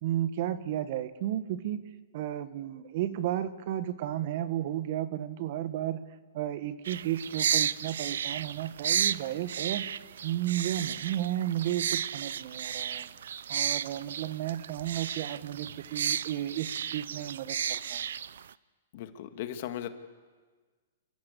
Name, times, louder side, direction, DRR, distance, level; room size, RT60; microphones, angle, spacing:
voice 1, 0.0-1.8 2.1-6.0 6.3-9.9 10.2-13.1 13.5-18.0, right 12 dB, 50° right, 12 dB, 1.6 m, -33 dB
sound 1, 6.8-18.5, right 9 dB, 70° right, 0.6 m, -33 dB
voice 2, 18.9-19.9, left 11 dB, 55° left, 8 dB, 2.0 m, -37 dB
28.5 x 15.5 x 8.4 m, 1.4 s
hypercardioid pair, 125°, 0 cm